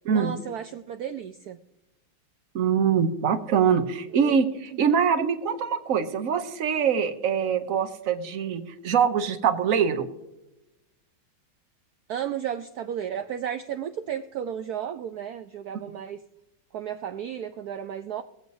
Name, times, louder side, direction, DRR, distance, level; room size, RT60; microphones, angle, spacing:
voice 1, 0.1-1.6 4.1-4.4 4.7-4.8 12.1-16.2 16.7-18.2, right 9 dB, 80° right, 8 dB, 0.8 m, -33 dB
voice 2, 2.5-10.1, right 7 dB, 55° right, 9 dB, 1.0 m, -24 dB
22.5 x 7.9 x 2.7 m, 0.97 s
omnidirectional pair, 2.2 m